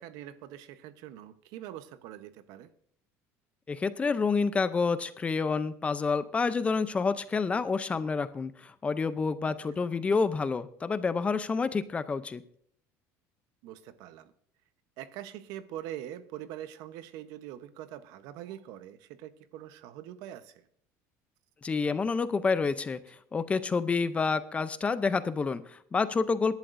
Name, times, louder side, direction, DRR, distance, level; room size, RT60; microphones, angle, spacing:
voice 1, 0.0-2.7 9.4-9.8 13.6-14.3 15.0-20.6, right 12 dB, 70° right, 12 dB, 0.9 m, -43 dB
voice 2, 3.7-12.4 21.6-23.0 23.3-26.5, left 4 dB, 20° left, 13 dB, 0.5 m, -28 dB
22.5 x 11.5 x 2.6 m, 0.63 s
cardioid pair, 140°, 7 cm